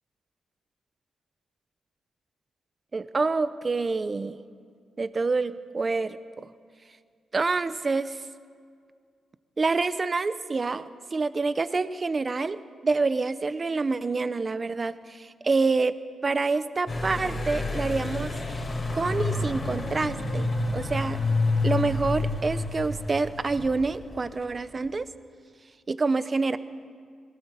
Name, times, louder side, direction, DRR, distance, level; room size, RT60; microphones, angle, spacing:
voice 1, 2.9-4.4 5.0-6.5 7.3-8.2 9.6-18.3 18.9-20.5 20.7-21.2 21.6-25.1 25.9-26.6, right 3 dB, 25° right, 14 dB, 0.7 m, -27 dB
sound 1, 16.9-24.4, left 3 dB, 25° left, 3.6 m, -29 dB
22.0 x 17.5 x 7.6 m, 2.1 s
wide cardioid pair, 145°, 0 cm